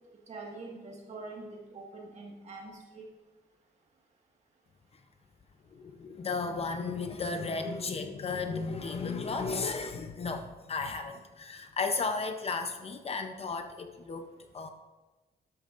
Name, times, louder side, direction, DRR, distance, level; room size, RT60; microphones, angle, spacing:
voice 1, 0.3-3.0, right 3 dB, 40° right, -1 dB, 1.7 m, -44 dB
voice 2, 5.7-14.7, left 4 dB, 35° left, 6 dB, 0.6 m, -34 dB
12.5 x 12.0 x 2.5 m, 1.2 s
wide cardioid pair, 170°, 17 cm